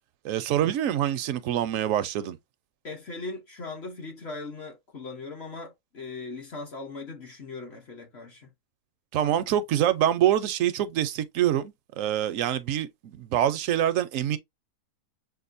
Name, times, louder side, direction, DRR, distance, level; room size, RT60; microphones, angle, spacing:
voice 1, 0.2-2.4 9.1-14.4, right 11 dB, 70° right, 0.8 m, -25 dB
voice 2, 2.8-8.5, left 3 dB, 50° left, 1.0 m, -39 dB
6.6 x 2.4 x 2.5 m
omnidirectional pair, 1.6 m